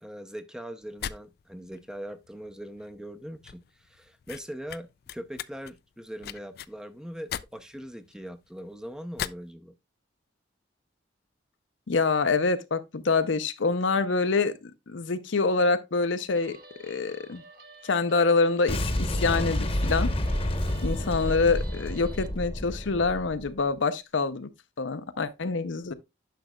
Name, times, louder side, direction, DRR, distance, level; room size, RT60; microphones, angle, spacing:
voice 1, 0.0-9.7, equal, 5° right, 0.5 m, -41 dB
sound 1, 0.8-9.5, left 9 dB, 55° left, 0.3 m, -41 dB
voice 2, 11.9-14.6 14.9-17.4 17.8-20.1 20.8-24.5 24.8-25.9, left 4 dB, 80° left, 0.7 m, -26 dB
Guitar, 16.3-22.3, right 2 dB, 50° right, 1.2 m, -50 dB
Boom, 18.7-23.6, left 1 dB, 30° left, 0.9 m, -29 dB
10.0 x 6.1 x 2.2 m
head